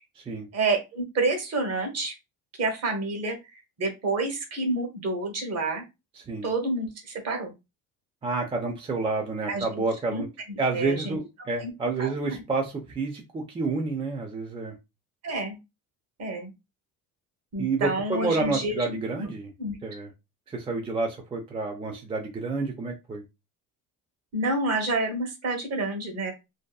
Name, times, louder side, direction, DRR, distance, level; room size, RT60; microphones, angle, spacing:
voice 1, 0.5-2.1 2.6-3.4 3.8-5.8 6.4-7.5 9.5-9.8 10.1-11.2 11.6-11.7 12.0-12.4 15.2-15.6 16.2-16.5 17.5-19.0 19.6-19.7 24.3-26.3, right 2 dB, 45° right, 4 dB, 1.0 m, -29 dB
voice 2, 6.2-6.5 8.2-10.3 10.6-14.7 17.6-19.5 19.8-20.1 20.5-23.2, right 3 dB, 15° right, 2 dB, 0.4 m, -29 dB
2.7 x 2.2 x 2.2 m, 0.24 s
cardioid pair, 115°, 34 cm